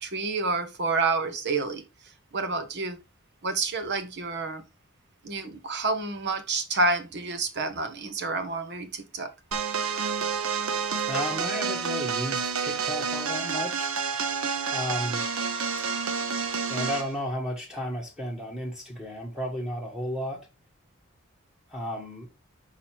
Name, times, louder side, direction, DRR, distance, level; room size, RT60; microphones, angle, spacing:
voice 1, 0.0-1.8 2.3-3.0 3.4-4.6 5.2-9.3, right 3 dB, 55° right, 1.1 m, -29 dB
sound 1, 9.5-17.1, right 5 dB, 80° right, 0.8 m, -29 dB
voice 2, 11.1-13.9 14.7-15.3 16.7-20.5 21.7-22.3, equal, 5° right, 1.7 m, -33 dB
5.7 x 4.1 x 4.4 m
head